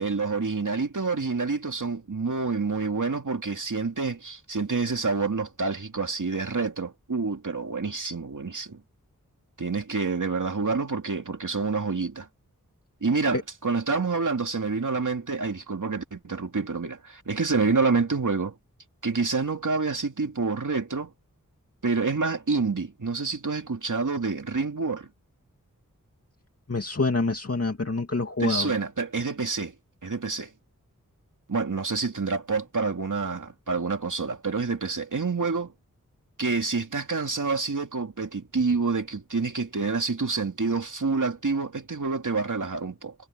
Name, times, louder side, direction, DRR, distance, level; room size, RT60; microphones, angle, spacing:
voice 1, 0.0-8.8 9.6-12.3 13.0-18.5 19.0-21.1 21.8-25.1 28.4-29.7 30.0-30.5 31.5-35.7 36.4-43.1, right 4 dB, 65° right, 2.5 m, -28 dB
voice 2, 26.7-28.7, left 3 dB, 45° left, 2.5 m, -26 dB
wide cardioid pair, 60°, 33 cm